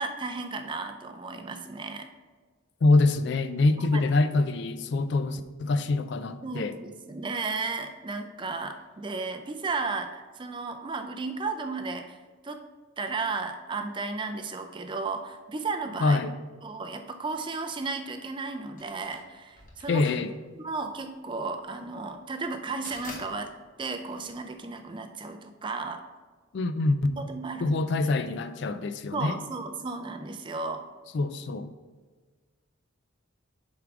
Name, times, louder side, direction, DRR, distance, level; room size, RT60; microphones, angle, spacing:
voice 1, 0.0-2.1 3.8-4.0 6.4-12.6 13.0-16.2 16.6-20.0 20.6-23.5 23.8-26.0 27.2-27.8 29.1-30.9, right 3 dB, 25° right, 6 dB, 0.4 m, -34 dB
voice 2, 2.8-6.7 16.0-16.3 19.9-20.3 26.5-27.2 27.6-29.4 31.1-31.7, left 3 dB, 55° left, 11 dB, 0.3 m, -25 dB
sound 1, 18.8-24.9, left 2 dB, 40° left, 1.0 m, -47 dB
7.8 x 3.7 x 4.8 m, 1.4 s
head